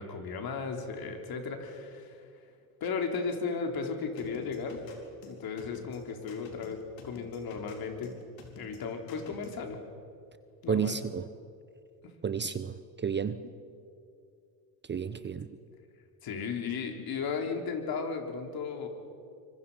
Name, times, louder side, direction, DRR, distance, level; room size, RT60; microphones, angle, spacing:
voice 1, 0.0-2.2 2.8-4.8 5.3-8.2 8.6-9.8 10.6-11.0 16.2-18.9, left 5 dB, 50° left, 4 dB, 3.7 m, -35 dB
sound 1, 4.2-9.6, left 4 dB, 70° left, 4.4 m, -50 dB
voice 2, 10.7-11.2 12.2-13.4 14.9-15.5, right 7 dB, 25° right, 13 dB, 0.8 m, -31 dB
25.0 x 25.0 x 5.6 m, 2.4 s
supercardioid pair, 85°, 47 cm